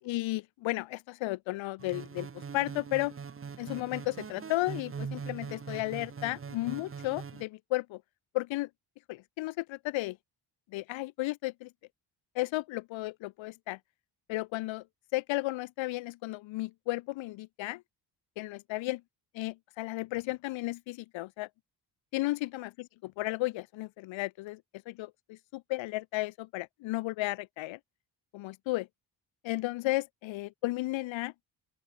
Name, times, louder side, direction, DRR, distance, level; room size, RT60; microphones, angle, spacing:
voice 1, 0.0-3.1 3.6-8.0 8.3-8.7 9.1-10.2 10.7-11.7 12.3-13.8 14.3-14.8 15.1-17.8 18.4-19.0 19.3-21.5 22.1-24.6 24.9-27.8 28.3-28.9 29.4-31.3, left 19 dB, 85° left, 0.8 m, -34 dB
sound 1, 1.8-7.4, right 6 dB, 30° right, 1.7 m, -42 dB
open air
cardioid pair, 120°, 45 cm